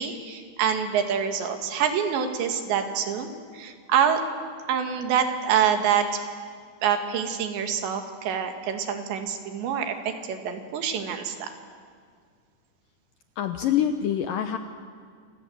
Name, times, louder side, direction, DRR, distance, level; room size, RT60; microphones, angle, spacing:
voice 1, 0.0-4.2 4.7-6.2 6.8-11.5, right 8 dB, 80° right, 6 dB, 4.2 m, -26 dB
voice 2, 13.4-14.6, left 10 dB, 75° left, 7 dB, 2.1 m, -25 dB
28.5 x 25.5 x 7.9 m, 2.1 s
omnidirectional pair, 5.0 m